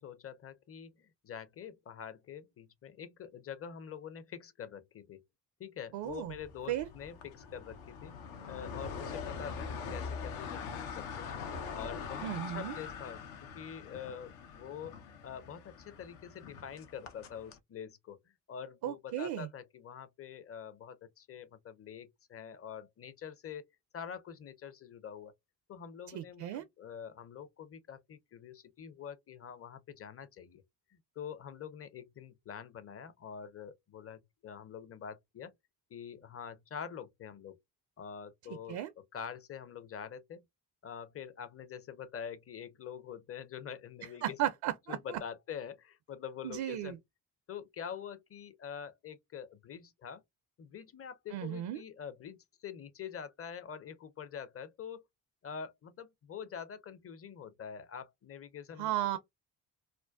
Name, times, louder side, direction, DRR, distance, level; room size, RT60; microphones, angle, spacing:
voice 1, 0.0-5.2 5.6-11.3 11.7-13.2 13.5-15.0 15.2-18.2 18.5-23.6 23.9-25.3 25.7-30.6 30.9-35.5 35.9-37.6 38.0-40.4 40.8-44.4 44.9-47.0 47.5-50.2 50.6-55.1 55.4-59.2, left 7 dB, 30° left, 0.6 m, -45 dB
voice 2, 5.9-6.3 6.7-6.9 12.2-12.7 18.8-19.5 26.1-26.6 38.7-38.9 44.2-45.0 46.4-47.0 51.3-51.8 58.8-59.2, right 12 dB, 55° right, 0.5 m, -35 dB
sound 1, 6.1-17.6, left 6 dB, 70° left, 0.7 m, -43 dB
2.5 x 2.2 x 2.2 m
hypercardioid pair, 45°, 50 cm